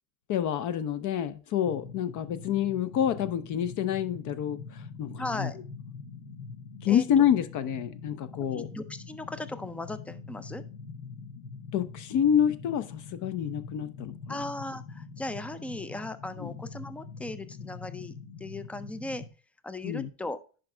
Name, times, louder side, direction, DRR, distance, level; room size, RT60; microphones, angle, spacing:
voice 1, 0.3-5.5 6.8-8.7 11.7-14.4 16.4-16.5 19.8-20.1, left 9 dB, 40° left, 13 dB, 0.7 m, -28 dB
sound 1, 1.6-19.3, left 5 dB, 85° left, 1.3 m, -44 dB
voice 2, 5.2-5.6 6.9-7.0 8.3-10.6 14.3-19.2 19.6-20.4, left 2 dB, 5° left, 12 dB, 0.4 m, -37 dB
10.5 x 5.0 x 3.4 m, 0.37 s
supercardioid pair, 110°, 46 cm